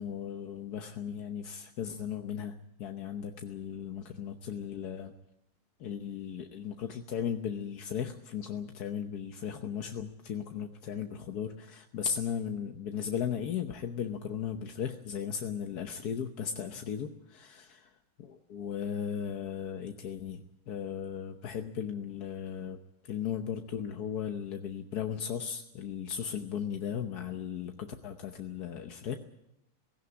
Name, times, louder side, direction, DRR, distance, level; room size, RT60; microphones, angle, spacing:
voice 1, 0.0-2.5 2.8-5.1 5.8-17.7 18.5-22.8 23.0-29.2, left 8 dB, 80° left, 5 dB, 1.6 m, -36 dB
17.5 x 16.5 x 9.6 m, 0.86 s
omnidirectional pair, 1.6 m